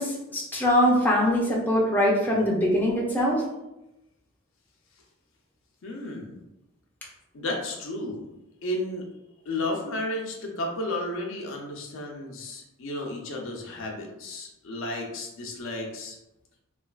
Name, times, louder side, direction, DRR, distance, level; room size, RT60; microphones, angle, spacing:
voice 1, 0.0-3.4, equal, 10° left, -4 dB, 0.5 m, -23 dB
voice 2, 5.8-6.4 7.3-8.2 8.6-9.1 9.5-16.2, left 1 dB, 65° left, 1 dB, 0.5 m, -33 dB
3.2 x 2.3 x 2.3 m, 0.90 s
head